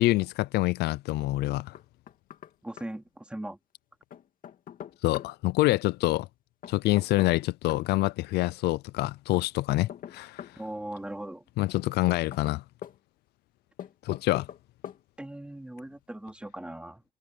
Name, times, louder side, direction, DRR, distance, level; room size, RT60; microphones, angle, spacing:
voice 1, 0.0-1.8 5.0-6.3 6.7-10.5 11.6-12.6 14.0-14.5, left 18 dB, 75° left, 0.5 m, -26 dB
Knock, 1.7-2.5 2.8-2.9 4.1-5.3 6.6-7.9 9.3-10.6 11.8-13.0 13.8-14.6 14.8-15.0, left 9 dB, 55° left, 2.2 m, -43 dB
voice 2, 2.6-3.6 10.6-11.4 15.2-17.0, right 1 dB, 5° right, 3.4 m, -39 dB
cardioid pair, 110°, 17 cm